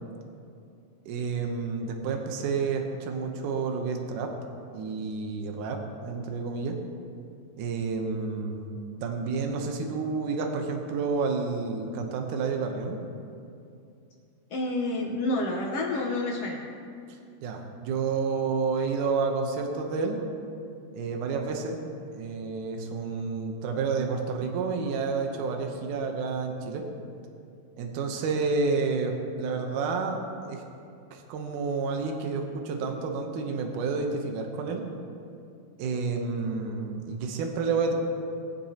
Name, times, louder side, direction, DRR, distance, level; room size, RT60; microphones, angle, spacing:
voice 1, 1.1-4.3 4.7-6.8 7.6-13.0 17.4-20.2 20.9-21.8 22.1-26.8 27.8-30.2 30.5-30.6 31.1-34.8 35.8-37.9, right 4 dB, 70° right, 3 dB, 2.3 m, -30 dB
voice 2, 14.5-16.6, left 2 dB, 70° left, -2 dB, 1.4 m, -29 dB
21.5 x 7.3 x 2.9 m, 2.5 s
omnidirectional pair, 4.1 m